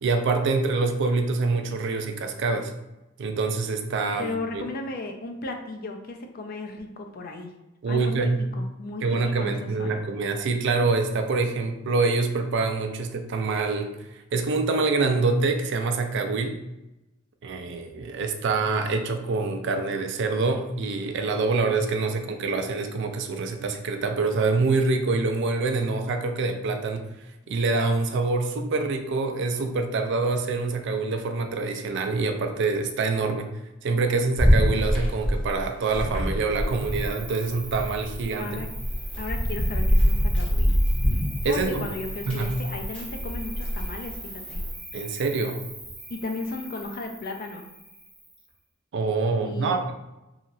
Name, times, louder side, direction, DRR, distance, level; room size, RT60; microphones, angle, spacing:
voice 1, 0.0-2.7 3.2-4.6 7.8-8.5 9.0-16.6 17.4-27.1 27.5-33.5 33.8-38.6 41.4-41.9 42.3-42.5 44.9-45.6 48.9-49.9, right 3 dB, 60° right, 6 dB, 0.4 m, -25 dB
voice 2, 4.2-7.5 7.9-8.1 8.6-10.0 38.4-38.7 39.2-40.8 41.5-44.6 46.1-47.7 49.4-49.9, left 2 dB, 45° left, 4 dB, 0.4 m, -35 dB
sound 1, 34.4-37.2 37.5-44.7, equal, 25° left, 0.9 m, -25 dB
Cricket, 36.5-48.5, right 1 dB, ahead, 0.7 m, -41 dB
2.9 x 2.8 x 2.6 m, 0.96 s
head